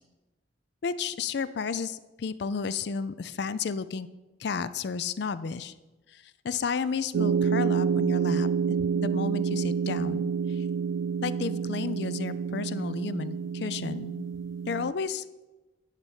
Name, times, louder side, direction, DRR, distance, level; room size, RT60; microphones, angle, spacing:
voice 1, 0.8-4.1 4.4-5.7 6.1-10.7 11.2-14.3 14.7-15.2, left 5 dB, 60° left, 15 dB, 0.4 m, -32 dB
sound 1, 7.1-14.9, right 6 dB, 80° right, 0.3 m, -28 dB
10.5 x 4.1 x 7.3 m, 1.1 s
head